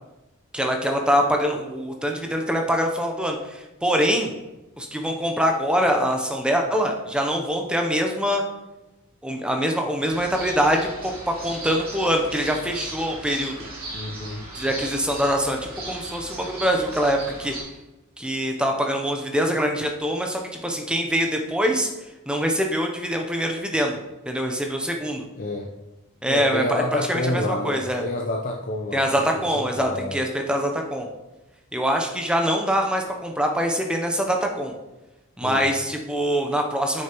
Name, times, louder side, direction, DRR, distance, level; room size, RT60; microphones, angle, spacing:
voice 1, 0.5-4.3 4.8-8.4 9.2-13.7 14.5-17.5 18.2-21.9 22.3-24.0 24.3-25.3 26.2-28.0 28.9-31.1 31.7-34.7 35.4-37.0, equal, 5° right, 2 dB, 0.6 m, -24 dB
sound 1, 10.1-17.6, right 2 dB, 40° right, 2.8 m, -37 dB
voice 2, 13.9-14.4 25.4-25.7 26.3-29.0 29.3-30.2 35.4-35.6, left 1 dB, 40° left, 0 dB, 0.5 m, -28 dB
8.6 x 6.5 x 2.9 m, 1.0 s
head